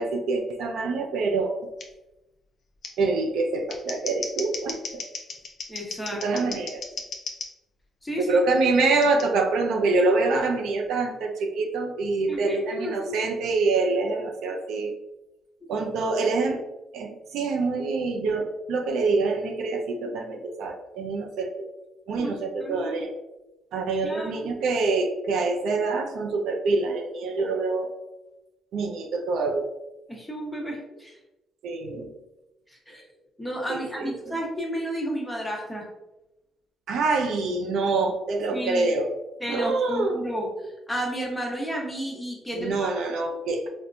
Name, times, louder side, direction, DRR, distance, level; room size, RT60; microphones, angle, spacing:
voice 1, 0.0-1.6 3.0-5.0 6.2-6.8 8.2-14.9 15.7-16.6 16.9-21.7 22.1-23.1 23.7-27.9 28.7-29.7 31.6-32.1 33.7-34.4 36.9-39.1 39.5-40.2 42.5-43.7, right 3 dB, 80° right, 3 dB, 0.4 m, -26 dB
Scissors, 1.8-1.9 2.8-2.9 3.5-7.5 9.0-9.2, left 4 dB, 60° left, 0.5 m, -35 dB
voice 2, 5.7-6.2 8.0-8.4 12.3-13.2 15.6-15.7 22.2-22.9 24.0-24.5 27.4-27.5 30.1-31.2 32.7-33.0 33.4-35.8 38.5-38.9 39.4-42.9, equal, 5° left, -2 dB, 1.0 m, -32 dB
4.2 x 2.1 x 2.6 m, 0.97 s
cardioid pair, 90°, 0 cm